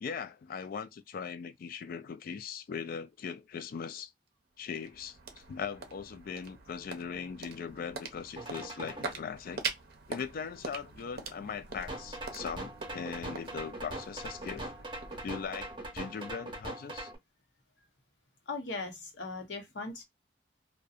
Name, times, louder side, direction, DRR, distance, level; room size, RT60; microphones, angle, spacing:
voice 1, 0.0-4.1 4.6-5.2 5.5-9.6 10.1-14.7 15.2-17.1, left 6 dB, 50° left, 0.3 m, -40 dB
sound 1, 4.3-16.7, right 5 dB, 60° right, 0.6 m, -44 dB
sound 2, 8.4-9.1 11.9-17.2, right 1 dB, 30° right, 0.8 m, -41 dB
voice 2, 18.5-20.0, left 3 dB, 75° left, 0.8 m, -39 dB
2.6 x 2.1 x 2.4 m
head